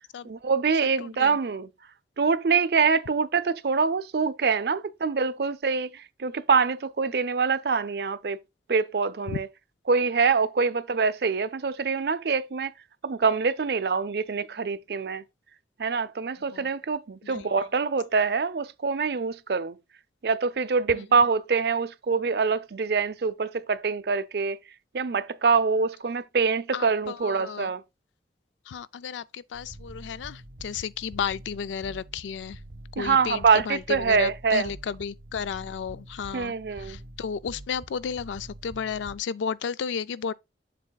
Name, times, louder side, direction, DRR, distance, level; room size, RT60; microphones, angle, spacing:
voice 1, 0.2-1.7 2.2-8.4 8.7-9.5 9.9-12.7 13.0-15.2 15.8-19.8 20.2-24.6 24.9-27.8 33.0-34.7 36.3-37.0, right 5 dB, 60° right, 0.5 m, -25 dB
voice 2, 1.0-1.4 9.3-9.4 16.5-16.8 17.2-17.7 20.9-21.0 26.7-27.7 28.7-32.6 32.9-40.3, left 6 dB, 90° left, 0.4 m, -33 dB
sound 1, 29.5-39.2, right 1 dB, 85° right, 1.1 m, -45 dB
7.5 x 6.5 x 2.3 m
head